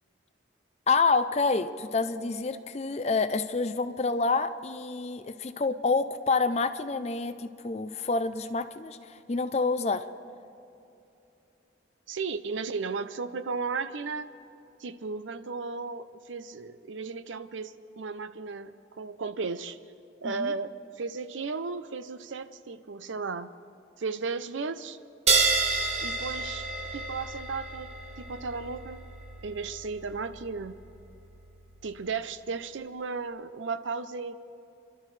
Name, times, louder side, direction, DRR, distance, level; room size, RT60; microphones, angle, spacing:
voice 1, 0.9-10.0 20.2-20.5, left 4 dB, 35° left, 11 dB, 0.5 m, -28 dB
voice 2, 12.1-14.3 14.8-19.8 20.2-23.5 24.0-25.0 26.0-29.1 29.4-30.8 31.8-34.4, right 4 dB, 80° right, 13 dB, 0.6 m, -35 dB
sound 1, 25.3-32.2, right 4 dB, 35° right, 1.2 m, -31 dB
29.5 x 12.5 x 3.3 m, 2.7 s
head